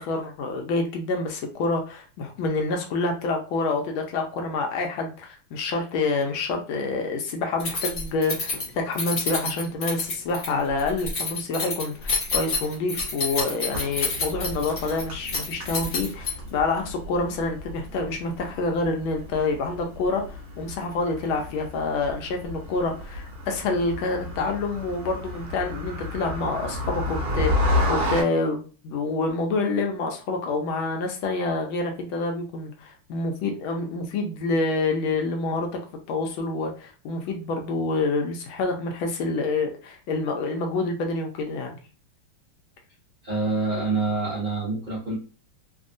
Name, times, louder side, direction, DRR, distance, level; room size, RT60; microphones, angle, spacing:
voice 1, 0.0-35.7 36.1-41.8, left 3 dB, 75° left, 3 dB, 1.4 m, -27 dB
Keys jangling, 7.6-16.6, left 3 dB, 55° left, 0.7 m, -29 dB
sound 1, 13.7-28.2, left 1 dB, 45° right, 1.6 m, -32 dB
voice 2, 43.2-45.2, right 3 dB, 75° right, -6 dB, 0.4 m, -26 dB
3.5 x 2.2 x 2.6 m, 0.37 s
omnidirectional pair, 2.4 m